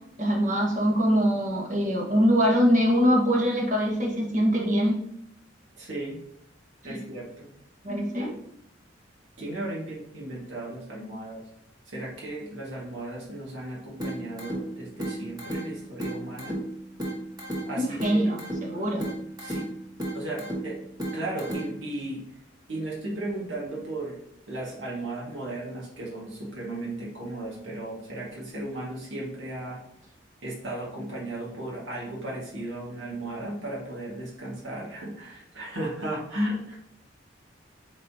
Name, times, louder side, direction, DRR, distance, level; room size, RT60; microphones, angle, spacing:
voice 1, 0.2-5.0 6.9-7.0 7.8-8.3 17.8-19.1, equal, 45° right, -1 dB, 1.7 m, -23 dB
voice 2, 5.8-6.2 6.8-7.5 9.4-11.4 11.9-16.6 17.7-18.4 19.4-19.7 20.1-20.8 21.1-22.2 22.7-24.2 24.5-29.8 30.4-36.8, right 1 dB, 75° right, -5 dB, 2.0 m, -35 dB
sound 1, 14.0-22.0, right 1 dB, 20° right, 1.7 m, -35 dB
8.5 x 4.2 x 2.9 m, 0.74 s
head